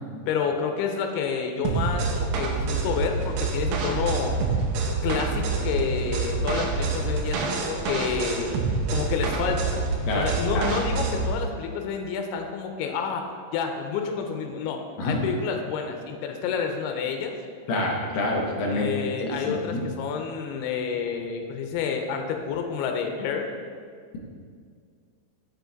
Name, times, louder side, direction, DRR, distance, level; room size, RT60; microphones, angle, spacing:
voice 1, 0.3-4.3 5.0-8.5 8.9-9.8 10.2-13.3 13.5-17.3 18.7-23.5, left 6 dB, 85° left, 4 dB, 2.7 m, -29 dB
sound 1, 1.6-11.3, right 3 dB, 80° right, 2.5 m, -27 dB
voice 2, 10.1-10.7 15.0-15.2 17.7-18.9 19.2-19.8, left 2 dB, 70° left, -2 dB, 1.7 m, -27 dB
7.2 x 6.8 x 4.0 m, 2.1 s
omnidirectional pair, 4.5 m